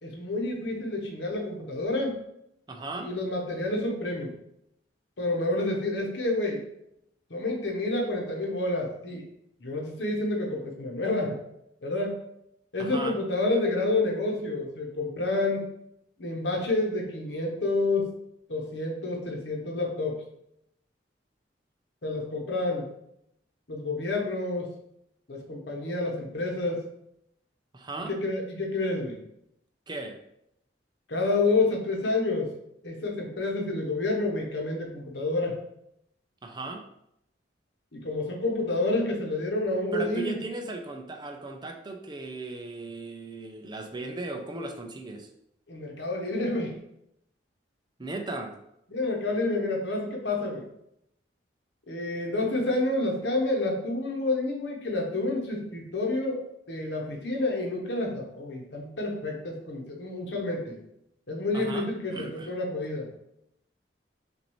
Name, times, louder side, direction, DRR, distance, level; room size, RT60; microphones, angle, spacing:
voice 1, 0.0-2.2 3.0-4.3 5.2-6.6 7.3-9.2 9.6-11.4 11.8-12.2 12.7-15.6 16.2-18.1 18.5-20.2 22.0-22.9 23.7-24.7 25.3-26.8 28.0-29.2 31.1-32.5 32.8-35.5 37.9-40.4 45.7-46.7 48.9-50.7 51.9-56.4 56.7-60.8 61.3-63.1, left 2 dB, 70° left, 0 dB, 1.0 m, -29 dB
voice 2, 2.7-3.1 12.8-13.2 27.7-28.1 29.9-30.2 36.4-36.8 39.9-45.3 48.0-48.5 61.5-62.5, right 2 dB, 25° right, 4 dB, 0.5 m, -37 dB
6.1 x 2.6 x 3.1 m, 0.78 s
head